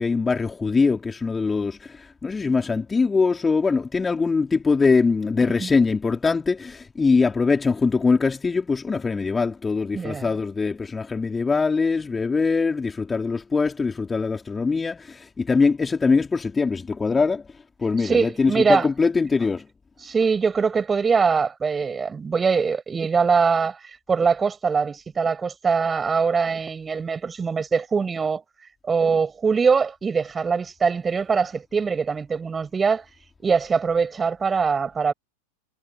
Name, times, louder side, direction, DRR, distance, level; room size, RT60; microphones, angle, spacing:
voice 1, 0.0-17.4 17.8-19.7, left 4 dB, 15° left, 3.8 m, -22 dB
voice 2, 9.9-10.3 18.0-18.9 20.0-23.8 24.1-28.4 28.9-33.0 33.4-35.1, right 5 dB, 15° right, 6.3 m, -22 dB
figure-of-eight pair, 90°, 0 cm